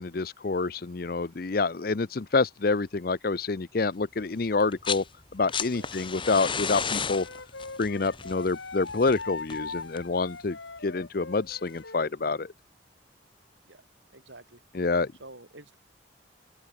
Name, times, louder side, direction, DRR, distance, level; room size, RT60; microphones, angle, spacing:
voice 1, 0.0-5.0 5.3-7.3 7.8-10.6 10.8-12.5 14.7-15.1, left 3 dB, 50° left, 0.6 m, -27 dB
sound 1, 4.6-5.1 5.3-10.2 11.5-11.6, left 6 dB, 25° left, 1.5 m, -34 dB
Wind instrument woodwind instrument, 6.8-12.1, left 3 dB, 75° left, 3.1 m, -41 dB
voice 2, 14.1-14.6 15.2-15.8, right 2 dB, 75° right, 6.4 m, -48 dB
open air
head